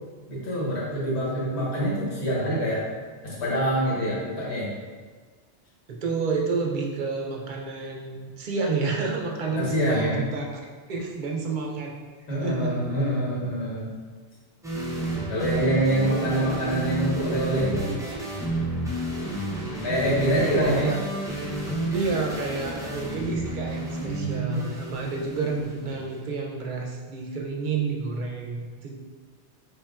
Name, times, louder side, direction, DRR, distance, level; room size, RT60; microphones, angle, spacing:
voice 1, 0.3-2.9 3.2-4.7 9.5-10.3 12.3-13.9 15.3-17.9 19.8-20.9 24.0-24.6, right 1 dB, 75° left, -6 dB, 1.4 m, -26 dB
voice 2, 5.9-10.6 10.9-12.0 12.4-12.8 20.2-21.0 21.9-28.9, right 4 dB, 55° right, 0 dB, 0.6 m, -29 dB
sound 1, 14.6-26.2, right 1 dB, 5° right, 0.4 m, -31 dB
4.3 x 3.4 x 2.3 m, 1.4 s
omnidirectional pair, 1.1 m